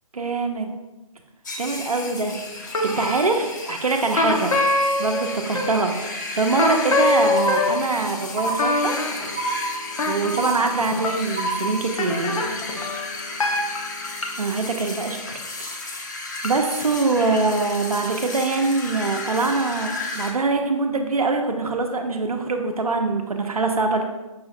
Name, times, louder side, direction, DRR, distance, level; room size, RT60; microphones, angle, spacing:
voice 1, 0.1-0.7 1.6-4.6 5.0-9.0 9.5-12.4 14.4-16.1 16.4-24.0, right 3 dB, 75° right, 4 dB, 0.5 m, -24 dB
sound 1, 1.4-20.3, left 3 dB, 30° left, 0.5 m, -34 dB
sound 2, 2.7-3.4 4.1-6.0 6.6-11.2 12.0-14.3 16.4-16.5, left 2 dB, 65° left, 0.7 m, -24 dB
sound 3, 7.4-8.0 8.4-9.0 9.4-10.0 10.4-11.0 11.4-12.0, right 3 dB, 30° right, 0.7 m, -28 dB
5.5 x 3.1 x 2.7 m, 1.1 s
figure-of-eight pair, 145°, 19 cm